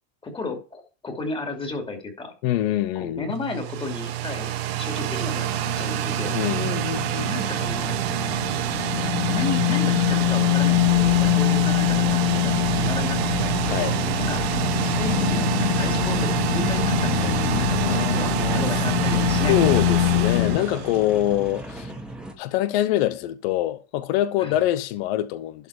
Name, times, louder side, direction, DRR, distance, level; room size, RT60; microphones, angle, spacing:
voice 1, 0.2-2.3 2.9-4.5 4.8-5.5 5.8-6.4 7.2-8.0 9.0-13.6 14.2-14.5 14.8-19.7 24.4-24.6, left 3 dB, 15° left, 2.7 m, -33 dB
voice 2, 2.4-3.3 6.3-7.3 13.7-14.0 17.8-18.6 19.5-21.9 22.4-25.7, left 13 dB, 60° left, 0.9 m, -25 dB
sound 1, 3.3-21.4, right 13 dB, 65° right, 1.4 m, -27 dB
sound 2, 5.0-20.6, left 19 dB, 75° left, 0.6 m, -24 dB
sound 3, 13.0-22.3, right 1 dB, 5° right, 1.7 m, -38 dB
12.0 x 4.3 x 4.9 m
supercardioid pair, 130°, 33 cm